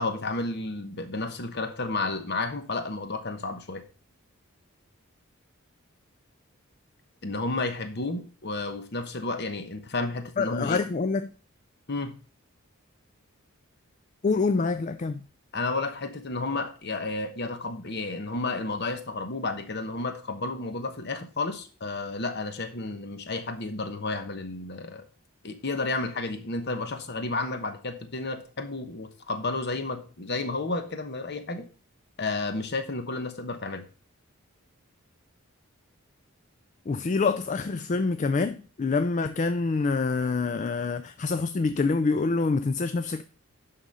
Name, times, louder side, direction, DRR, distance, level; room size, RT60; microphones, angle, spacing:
voice 1, 0.0-3.8 7.2-10.8 11.9-12.2 15.5-25.0 25.4-31.7 32.2-33.8, left 3 dB, 50° left, 1.1 m, -32 dB
voice 2, 10.4-11.3 14.2-15.2 36.9-43.2, left 4 dB, 35° left, 0.3 m, -26 dB
11.0 x 3.8 x 5.5 m
head